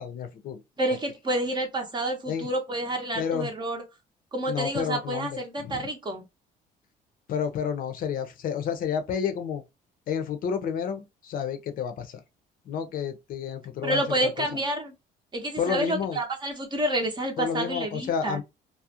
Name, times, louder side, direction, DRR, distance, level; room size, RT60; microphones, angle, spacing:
voice 1, 0.0-0.6 2.3-2.5 3.1-3.5 4.5-5.9 7.3-9.6 10.1-12.2 12.7-14.5 15.6-16.2 17.4-18.4, left 7 dB, 55° left, 0.6 m, -30 dB
voice 2, 0.8-3.8 4.3-6.2 13.8-14.9 15.3-18.4, right 1 dB, 25° right, 0.6 m, -29 dB
2.4 x 2.0 x 2.7 m
cardioid pair, 110°, 17 cm